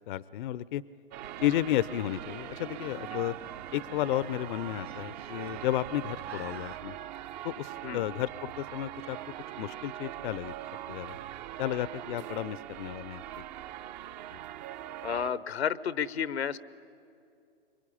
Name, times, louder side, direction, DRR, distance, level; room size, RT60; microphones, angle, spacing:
voice 1, 0.1-0.8 1.4-3.3 3.7-7.0 7.4-9.2 9.6-10.5 10.9-11.2 11.6-13.4, left 13 dB, 50° left, 19 dB, 0.6 m, -32 dB
sound 1, 1.1-15.3, right 12 dB, 45° right, 0.7 m, -42 dB
sound 2, 1.2-6.8, right 6 dB, 85° right, 1.1 m, -49 dB
voice 2, 15.0-16.6, left 8 dB, 85° left, 17 dB, 0.9 m, -31 dB
25.0 x 23.0 x 10.0 m, 2.6 s
hypercardioid pair, 125°, 31 cm